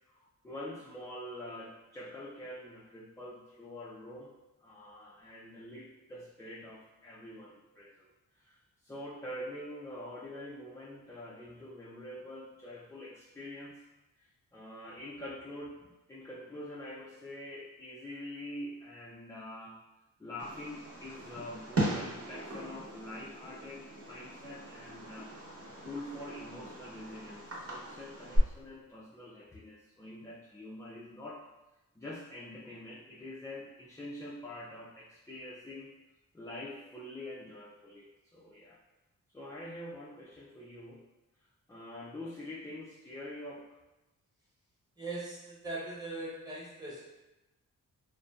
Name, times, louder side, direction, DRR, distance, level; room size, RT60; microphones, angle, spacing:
voice 1, 0.1-4.3 4.6-8.1 8.4-13.8 14.2-19.8 20.2-31.4 32.0-35.9 36.3-38.8 39.3-41.0 41.7-43.7, left 1 dB, 10° left, -5 dB, 0.3 m, -45 dB
Fireworks, 20.4-28.4, right 1 dB, 45° right, 1.0 m, -38 dB
voice 2, 45.0-47.0, right 2 dB, 10° right, -6 dB, 1.0 m, -40 dB
2.6 x 2.1 x 2.3 m, 0.99 s
cardioid pair, 70°, 34 cm